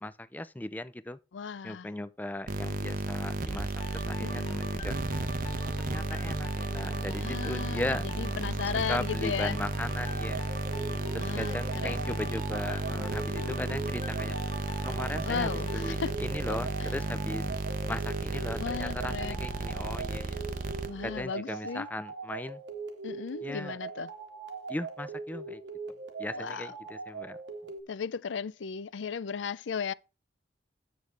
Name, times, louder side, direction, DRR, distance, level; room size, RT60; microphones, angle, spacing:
voice 1, 0.0-1.2 1.6-4.9 5.8-8.0 8.9-10.5 11.1-14.4 14.8-17.4 17.9-20.4 21.0-22.6 23.4-23.8 24.7-25.6 26.2-27.4, left 1 dB, 10° left, 0.5 m, -37 dB
voice 2, 1.3-1.9 4.2-4.6 7.2-9.6 11.2-12.4 15.2-16.1 16.8-16.9 18.5-19.4 20.9-21.9 23.0-24.1 26.3-26.7 27.9-29.9, left 6 dB, 85° left, 0.5 m, -36 dB
sound 1, 2.5-21.3, right 2 dB, 50° right, 0.8 m, -33 dB
sound 2, 3.8-17.5 17.9-18.1, left 3 dB, 35° left, 1.3 m, -45 dB
sound 3, 10.0-27.8, right 4 dB, 85° right, 1.8 m, -41 dB
9.4 x 6.5 x 3.4 m
head